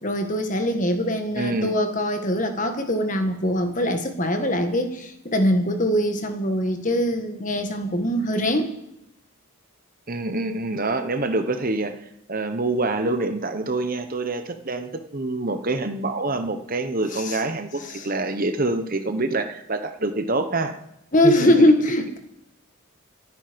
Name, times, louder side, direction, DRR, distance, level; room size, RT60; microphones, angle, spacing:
voice 1, 0.0-8.7 17.1-17.4 17.8-18.1 21.1-22.2, left 1 dB, 35° left, 6 dB, 1.6 m, -22 dB
voice 2, 1.4-1.7 10.1-11.9 12.3-20.8 21.2-21.5, right 2 dB, 40° right, 8 dB, 1.1 m, -26 dB
27.0 x 9.4 x 5.3 m, 0.85 s
head